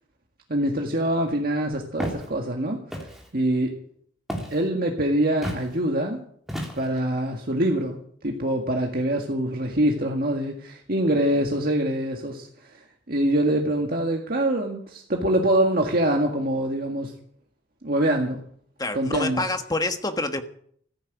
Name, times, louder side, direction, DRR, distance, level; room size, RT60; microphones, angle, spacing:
voice 1, 0.5-2.8 3.3-3.7 4.5-6.2 6.8-12.8 13.1-17.1 17.8-18.4 18.9-19.4, right 1 dB, 55° right, 1.9 m, -24 dB
Walk footsteps, 2.0-2.3 2.9-3.3 4.3-4.6 5.4-5.7 6.5-7.0, equal, ahead, 3.3 m, -32 dB
voice 2, 18.8-20.4, left 2 dB, 20° left, 1.3 m, -27 dB
15.0 x 10.0 x 8.1 m
head